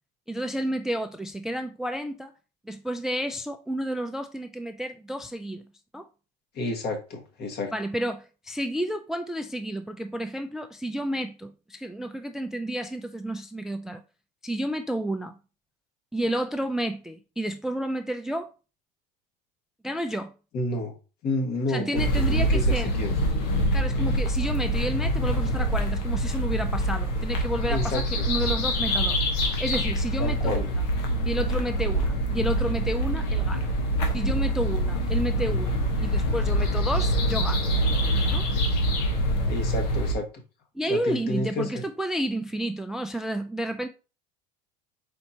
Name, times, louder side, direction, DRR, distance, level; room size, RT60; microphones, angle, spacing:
voice 1, 0.3-2.3 2.7-5.6 5.9-6.0 7.7-14.0 14.4-15.3 16.1-18.5 19.8-20.3 21.7-22.9 23.7-29.2 29.6-30.7 31.2-33.7 34.1-37.6 38.3-38.5 40.8-43.9, right 1 dB, ahead, 0.3 m, -31 dB
voice 2, 6.6-7.7 20.5-21.0 21.2-23.1 27.7-28.3 30.2-30.7 39.5-40.3 40.9-41.8, left 2 dB, 50° left, 1.7 m, -30 dB
sound 1, 21.9-40.1, equal, 80° left, 1.2 m, -25 dB
4.3 x 4.2 x 2.9 m
supercardioid pair, 100°, 21 cm